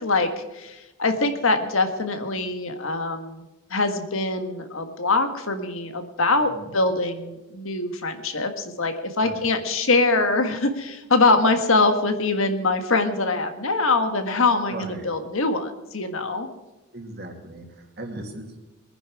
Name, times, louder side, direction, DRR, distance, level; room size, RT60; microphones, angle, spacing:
voice 1, 0.0-3.4 3.7-16.5, left 3 dB, 70° left, 7 dB, 1.6 m, -23 dB
voice 2, 14.7-15.1 16.9-18.5, right 1 dB, 45° right, 3 dB, 2.5 m, -37 dB
22.5 x 10.0 x 4.9 m, 1.1 s
head